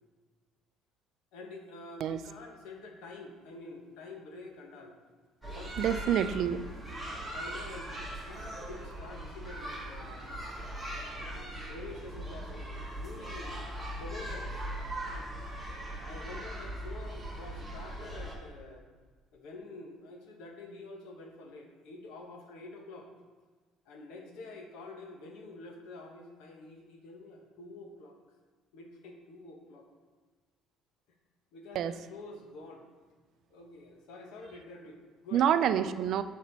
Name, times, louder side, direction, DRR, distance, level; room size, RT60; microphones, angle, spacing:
voice 1, 1.3-4.9 5.5-6.1 7.3-10.4 11.1-14.6 16.0-18.8 19.3-23.1 23.9-28.2 28.7-29.9 31.5-32.9 33.5-35.8, left 2 dB, 80° left, 2 dB, 1.1 m, -47 dB
sound 1, 5.4-18.4, right 1 dB, ahead, 1.1 m, -40 dB
voice 2, 5.8-6.7 31.7-31.9 35.3-36.2, right 9 dB, 50° right, 12 dB, 0.3 m, -27 dB
7.7 x 4.2 x 4.0 m, 1.4 s
cardioid pair, 175°, 0 cm